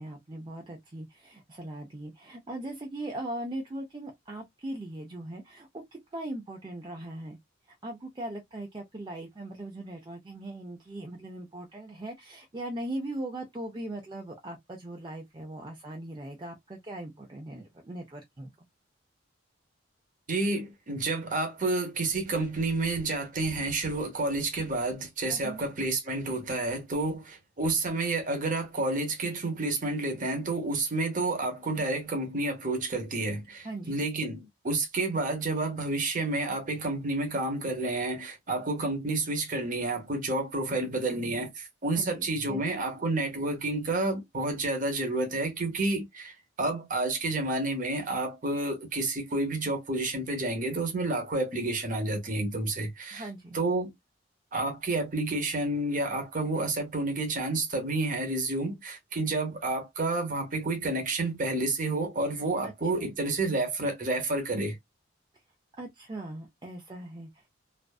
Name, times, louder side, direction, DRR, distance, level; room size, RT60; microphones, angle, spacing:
voice 1, 0.0-5.8 6.1-7.4 7.7-18.5 25.3-25.7 33.6-34.0 41.9-42.7 53.1-53.6 62.6-63.1 65.8-67.5, right 1 dB, 25° right, 0.4 m, -39 dB
voice 2, 20.3-46.3 46.6-53.2 53.5-53.9 54.5-64.8, right 2 dB, 40° right, 0.8 m, -30 dB
2.5 x 2.3 x 2.3 m
head